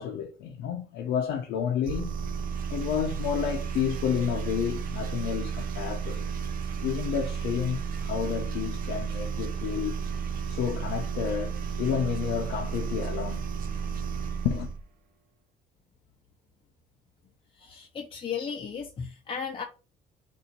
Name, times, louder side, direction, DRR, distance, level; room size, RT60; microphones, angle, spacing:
voice 1, 0.0-2.1 2.7-6.2 6.8-9.9 10.5-13.4 14.4-14.7, left 8 dB, 80° left, 0.8 m, -30 dB
sound 1, 1.8-14.8, right 6 dB, 60° right, 0.7 m, -33 dB
voice 2, 17.5-19.6, left 6 dB, 35° left, 0.7 m, -35 dB
4.0 x 2.8 x 4.2 m
cardioid pair, 110°, 17 cm